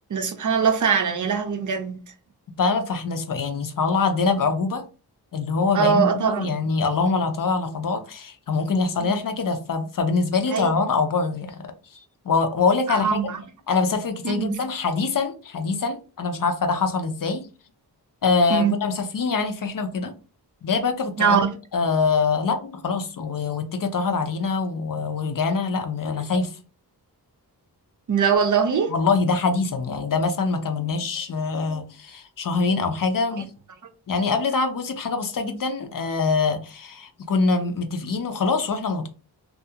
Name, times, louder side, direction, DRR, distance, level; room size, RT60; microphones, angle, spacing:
voice 1, 0.1-2.1 5.7-6.5 9.0-9.1 10.5-10.8 12.9-13.4 14.2-14.6 18.5-18.7 21.2-21.5 28.1-28.9, right 6 dB, 50° right, 0.5 m, -22 dB
voice 2, 2.6-4.8 5.3-11.6 12.2-13.2 13.7-17.5 18.2-20.1 20.6-21.4 21.7-26.5 28.9-33.5 34.1-39.1, left 4 dB, 55° left, 0.5 m, -24 dB
2.4 x 2.3 x 2.7 m
wide cardioid pair, 75°, 40 cm